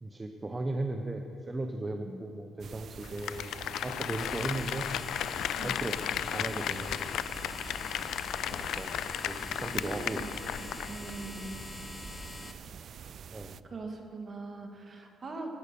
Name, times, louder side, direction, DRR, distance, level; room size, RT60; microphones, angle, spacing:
voice 1, 0.0-5.3 5.6-6.0 6.3-7.2 8.5-9.0 9.2-10.2 10.6-10.7 11.2-11.5 13.3-13.6, right 2 dB, 25° right, 5 dB, 0.8 m, -37 dB
voice 2, 1.9-2.3 5.6-5.9 9.0-9.1 9.8-11.6 13.6-15.5, right 3 dB, 40° right, 3 dB, 2.1 m, -42 dB
sound 1, 2.6-13.6, right 7 dB, 60° right, 0.4 m, -47 dB
Applause, 3.0-11.2 11.5-11.6, left 11 dB, 80° left, 0.4 m, -35 dB
sound 2, 4.2-12.5, left 2 dB, 20° left, 1.1 m, -44 dB
16.5 x 9.9 x 6.9 m, 2.7 s
cardioid pair, 90°, 0 cm